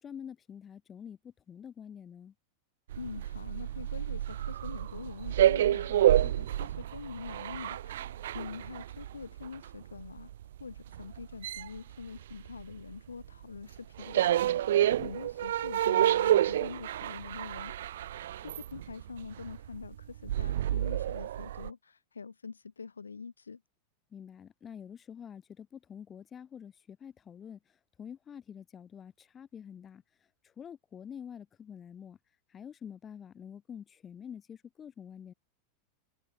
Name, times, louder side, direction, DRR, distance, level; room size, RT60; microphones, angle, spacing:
voice 1, 0.0-2.3 14.8-15.1 24.1-30.0 30.4-32.2 32.5-35.3, left 8 dB, 25° left, 6.7 m, -47 dB
sound 1, 2.9-12.9 13.2-21.7, right 12 dB, 60° right, 0.5 m, -29 dB
voice 2, 3.0-10.3 10.6-14.2 15.0-17.7 18.4-23.6, left 5 dB, 75° left, 1.4 m, -45 dB
figure-of-eight pair, 90°, 0 cm